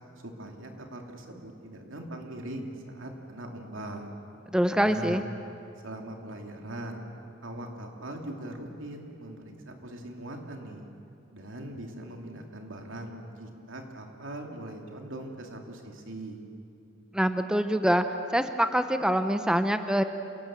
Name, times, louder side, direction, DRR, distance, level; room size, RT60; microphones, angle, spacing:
voice 1, 0.2-4.1 4.8-5.3 5.8-7.0 7.4-10.9 11.3-16.4, right 1 dB, 85° right, 2 dB, 2.7 m, -41 dB
voice 2, 4.5-5.2 17.1-18.0 18.3-20.0, equal, 5° right, 8 dB, 0.7 m, -25 dB
27.5 x 18.5 x 7.5 m, 2.6 s
head